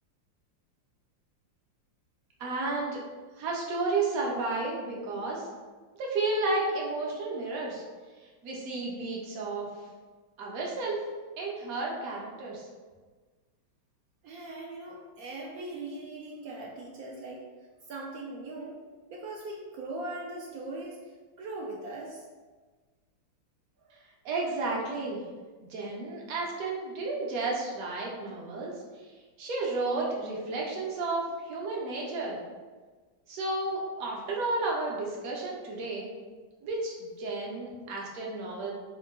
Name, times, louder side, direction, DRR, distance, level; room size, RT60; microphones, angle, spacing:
voice 1, 2.4-3.0 3.4-5.5 6.0-7.8 8.4-9.7 10.4-11.0 11.4-12.7 24.2-25.2 25.7-28.8 29.4-32.4 33.3-36.1 36.6-38.7, right 3 dB, 60° right, -2 dB, 1.0 m, -32 dB
voice 2, 14.2-17.4 17.9-18.8 19.1-21.0 21.4-22.2 23.8-23.9, right 2 dB, 80° right, -2 dB, 0.8 m, -40 dB
4.5 x 2.3 x 3.6 m, 1.4 s
omnidirectional pair, 2.1 m